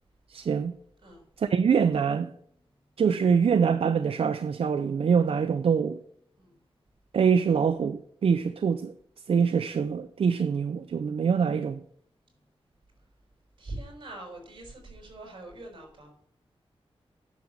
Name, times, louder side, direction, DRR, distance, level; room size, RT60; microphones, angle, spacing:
voice 1, 0.3-0.7 1.4-2.3 3.0-6.0 7.1-8.9 9.3-11.8, right 6 dB, 75° right, 0.6 m, -24 dB
voice 2, 13.6-16.1, right 2 dB, 50° right, 5.9 m, -43 dB
10.0 x 7.2 x 7.9 m
wide cardioid pair, 155°, 10 cm